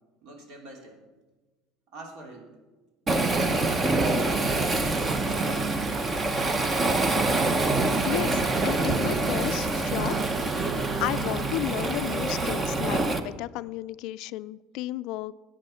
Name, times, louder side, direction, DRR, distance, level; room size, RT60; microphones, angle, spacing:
voice 1, 0.2-1.0 1.9-2.6 5.1-6.5, right 2 dB, 60° right, 1 dB, 3.0 m, -45 dB
Waves surf, 3.1-13.2, right 2 dB, 25° right, 0.8 m, -25 dB
voice 2, 8.1-10.2 10.7-15.3, left 17 dB, 65° left, 16 dB, 0.3 m, -33 dB
13.0 x 8.7 x 5.6 m, 1.2 s
cardioid pair, 135°, 0 cm